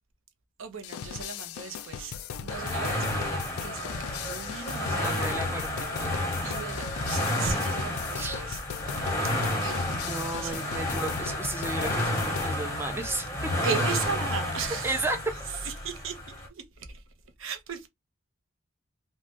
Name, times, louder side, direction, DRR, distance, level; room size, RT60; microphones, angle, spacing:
voice 1, 0.6-5.2 6.4-8.6 9.6-9.9 10.1-10.8 13.6-15.0 15.6-17.0 17.4-17.9, right 6 dB, 65° right, 0.7 m, -37 dB
sound 1, 0.8-12.5, left 8 dB, 90° left, 0.3 m, -39 dB
sound 2, 2.5-16.5, left 1 dB, 15° left, 1.0 m, -31 dB
voice 2, 4.9-6.3 8.1-8.4 9.9-13.5 14.8-15.2, right 2 dB, 10° right, 0.6 m, -34 dB
3.2 x 2.2 x 2.8 m
head